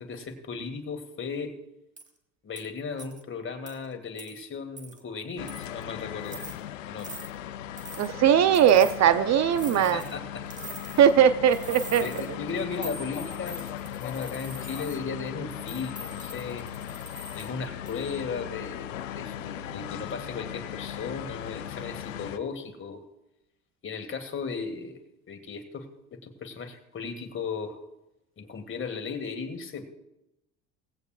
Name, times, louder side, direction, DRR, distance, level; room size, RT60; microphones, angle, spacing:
voice 1, 0.0-1.5 2.4-6.4 6.9-7.1 9.7-11.0 12.0-16.7 17.3-23.0 23.8-25.0 25.3-25.9 26.1-27.8 28.4-29.9, left 5 dB, 35° left, 6 dB, 2.0 m, -36 dB
sound 1, 2.0-2.1 2.6-2.7 3.0-3.2 3.7-3.8 4.2-4.4 4.8-5.0 5.5-5.8 6.2-6.6 7.0-7.3 7.8-8.1 8.5-9.0 9.5-10.1 10.5-11.1 11.5-12.3 12.8-15.0 15.7-17.5 17.9-18.2, right 1 dB, 20° right, 1.9 m, -43 dB
sound 2, 5.4-22.4, left 10 dB, 90° left, 0.6 m, -38 dB
voice 2, 8.0-10.0 11.0-12.1, right 9 dB, 45° right, 13 dB, 0.7 m, -20 dB
18.5 x 16.0 x 2.5 m, 0.89 s
hypercardioid pair, 65°, 37 cm